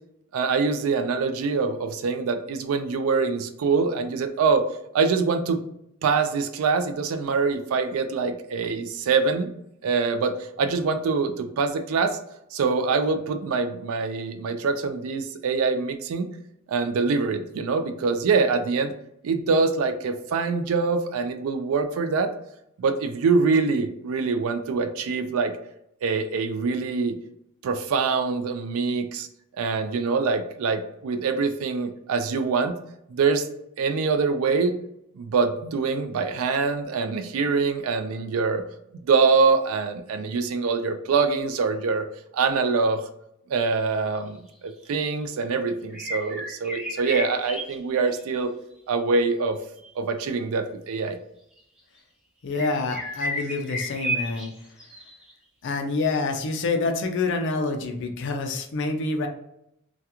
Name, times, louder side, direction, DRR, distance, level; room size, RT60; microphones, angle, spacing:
voice 1, 0.3-4.6 4.9-5.6 6.0-9.5 9.8-12.2 12.5-16.3 16.7-18.9 19.2-22.3 22.8-25.5 26.0-27.2 27.6-29.3 29.6-32.8 33.1-33.5 33.8-34.7 35.1-38.6 39.0-42.1 42.3-43.1 43.5-44.4 44.6-48.5 48.9-49.6 50.0-51.2, right 4 dB, 65° right, 8 dB, 0.3 m, -24 dB
sound 1, 43.9-44.0 44.7-44.9 45.9-48.4 49.8-49.9 51.6-51.7 52.5-55.3, equal, 5° right, 0.5 m, -33 dB
voice 2, 52.4-54.5 55.6-59.3, left 3 dB, 55° left, 4 dB, 0.4 m, -27 dB
2.3 x 2.3 x 2.8 m, 0.78 s
head